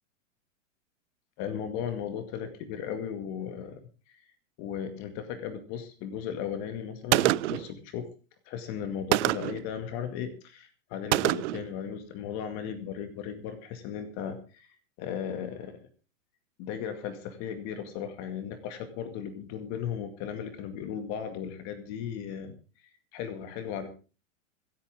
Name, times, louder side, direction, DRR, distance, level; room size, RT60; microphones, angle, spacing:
voice 1, 1.4-3.8 4.1-4.2 4.6-8.1 8.5-15.8 16.6-23.9, left 8 dB, 40° left, 8 dB, 2.2 m, -36 dB
Gunshot gunfire, 7.1-7.7 9.1-9.6 11.1-11.7, right 17 dB, 65° right, 0.6 m, -25 dB
26.0 x 8.9 x 3.6 m, 0.34 s
hypercardioid pair, 125°, 39 cm